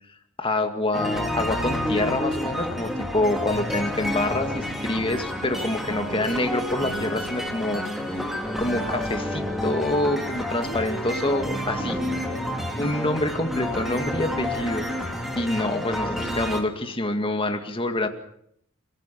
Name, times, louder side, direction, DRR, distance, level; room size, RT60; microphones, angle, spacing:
voice 1, 0.4-8.2 8.6-12.0 12.8-14.9 15.4-18.1, left 1 dB, 25° left, 6 dB, 2.1 m, -26 dB
sound 1, 0.9-16.6, left 1 dB, ahead, 3.1 m, -29 dB
voice 2, 8.2-8.9 10.6-11.4 11.8-13.0, left 1 dB, 65° left, 4 dB, 2.5 m, -41 dB
29.0 x 16.5 x 7.0 m, 0.73 s
head